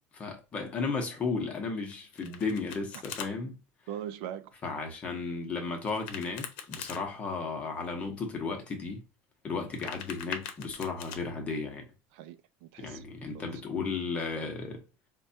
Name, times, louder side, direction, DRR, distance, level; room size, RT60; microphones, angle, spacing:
voice 1, 0.1-3.6 4.6-9.0 9.4-11.9 12.8-14.8, left 4 dB, 25° left, 0.8 m, -34 dB
Domestic sounds home sounds, 1.9-3.3 5.9-7.0 9.5-11.2, left 8 dB, 75° left, 0.7 m, -42 dB
voice 2, 3.9-4.5 12.1-13.6, right 10 dB, 75° right, 0.4 m, -42 dB
4.6 x 2.2 x 2.6 m
cardioid pair, 170°, 6 cm